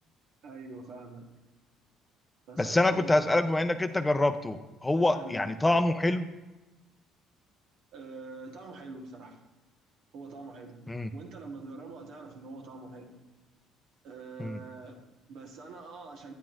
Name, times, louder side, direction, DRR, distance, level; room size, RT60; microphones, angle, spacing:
voice 1, 0.4-1.2 2.5-3.2 5.1-5.5 7.9-9.4 10.1-10.8 11.1-13.1 14.0-16.3, right 3 dB, 70° right, 2 dB, 1.2 m, -45 dB
voice 2, 2.6-6.3 10.9-11.1 14.4-14.6, left 2 dB, 15° left, 9 dB, 0.5 m, -26 dB
9.1 x 8.7 x 2.5 m, 1.1 s
supercardioid pair, 70°, 0 cm